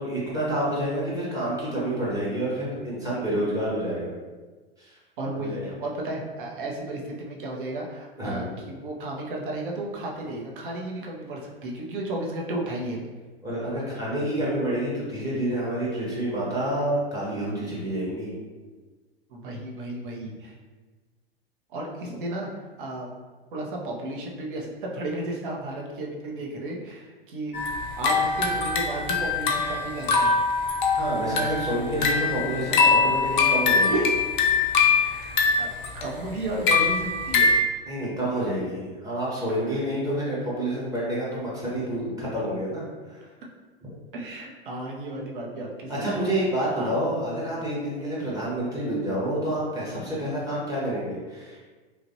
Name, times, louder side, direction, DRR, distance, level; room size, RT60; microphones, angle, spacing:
voice 1, 0.0-4.1 4.8-5.0 5.4-5.8 8.2-8.6 13.4-18.3 31.0-33.9 35.1-35.2 37.9-43.2 45.9-51.6, right 1 dB, 10° right, -7 dB, 0.7 m, -28 dB
voice 2, 5.2-13.0 19.3-20.6 21.7-22.5 22.8-23.1 23.5-27.6 28.0-30.4 33.9-34.0 35.0-37.5 39.6-39.8 44.1-46.2 46.8-47.0, right 1 dB, 55° right, -1 dB, 0.7 m, -33 dB
sound 1, 27.5-37.6, left 4 dB, 55° left, 0.5 m, -23 dB
3.0 x 2.4 x 2.6 m, 1.3 s
figure-of-eight pair, 90°, 30 cm